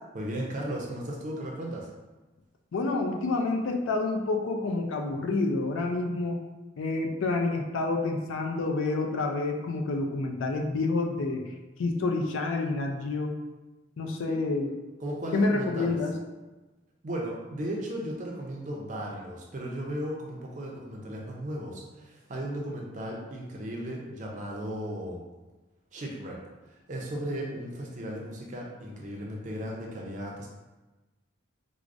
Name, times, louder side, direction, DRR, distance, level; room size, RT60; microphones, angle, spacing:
voice 1, 0.1-1.9 14.3-14.4 15.0-16.0 17.0-25.2 25.9-26.4 26.6-30.5, right 1 dB, 40° right, -2 dB, 0.4 m, -36 dB
voice 2, 2.7-6.4 6.8-11.5 11.8-13.4 14.0-14.7 15.3-16.2, left 3 dB, 75° left, 2 dB, 0.4 m, -28 dB
4.6 x 2.0 x 2.5 m, 1.2 s
head